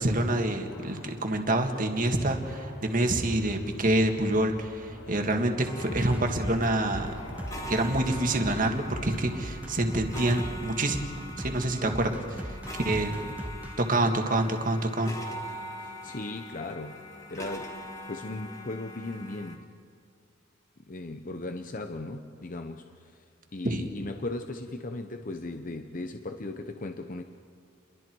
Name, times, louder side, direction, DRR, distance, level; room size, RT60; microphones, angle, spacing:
voice 1, 0.0-7.1 7.7-11.1 11.4-13.1 13.8-15.1 23.6-23.9, right 1 dB, 40° right, 4 dB, 1.9 m, -27 dB
sound 1, 0.7-8.7, left 1 dB, 75° left, 6.1 m, -46 dB
sound 2, 5.6-19.6, equal, 15° left, 1.8 m, -42 dB
sound 3, 5.9-13.7, equal, 5° right, 0.9 m, -39 dB
voice 2, 15.8-17.0 17.3-17.8 18.1-19.7 20.9-23.2 23.5-27.2, left 2 dB, 40° left, 6 dB, 0.9 m, -37 dB
30.0 x 22.5 x 4.7 m, 2.3 s
head